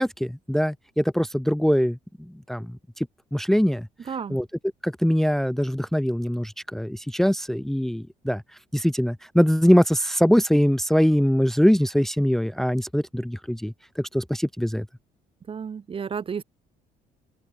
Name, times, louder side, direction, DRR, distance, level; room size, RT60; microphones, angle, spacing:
voice 1, 0.0-3.1 3.3-3.9 4.3-4.4 4.8-8.4 8.7-14.9, equal, ahead, 0.8 m, -22 dB
voice 2, 4.0-4.4 15.5-16.4, right 6 dB, 30° right, 1.0 m, -32 dB
open air
cardioid pair, 110°, 17 cm